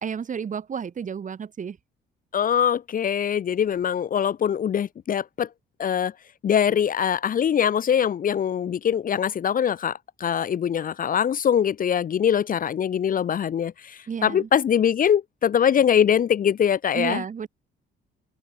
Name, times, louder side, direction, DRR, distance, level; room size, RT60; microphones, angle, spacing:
voice 1, 0.0-1.8 14.1-14.5 16.9-17.5, right 7 dB, 40° right, 1.0 m, -31 dB
voice 2, 2.3-5.5 5.8-6.1 6.4-17.2, left 8 dB, 45° left, 0.6 m, -23 dB
open air
cardioid pair, 90°, 20 cm